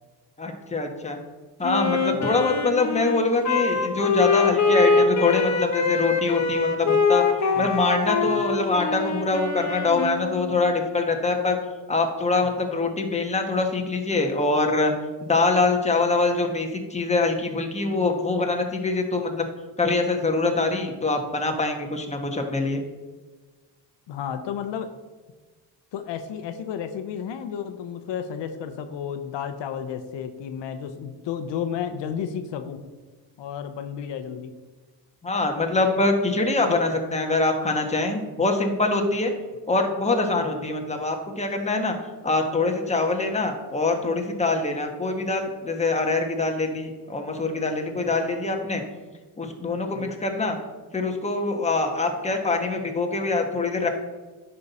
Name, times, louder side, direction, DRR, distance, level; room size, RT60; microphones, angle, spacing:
voice 1, 0.4-1.2 1.6-7.2 7.6-11.6 11.9-14.9 15.2-19.5 19.8-22.8 35.2-39.3 39.7-41.9 42.2-48.8 49.4-50.6 50.9-53.9, left 3 dB, 15° left, 3 dB, 1.3 m, -24 dB
Wind instrument woodwind instrument, 1.6-10.6, left 4 dB, 40° left, 1.1 m, -23 dB
voice 2, 2.1-2.5 7.5-7.8 8.3-8.5 24.1-24.9 25.9-32.8 33.4-34.5 40.4-40.5 48.0-48.1 49.9-50.2, left 8 dB, 90° left, 8 dB, 0.8 m, -32 dB
10.0 x 5.6 x 4.2 m, 1.3 s
cardioid pair, 105°, 42 cm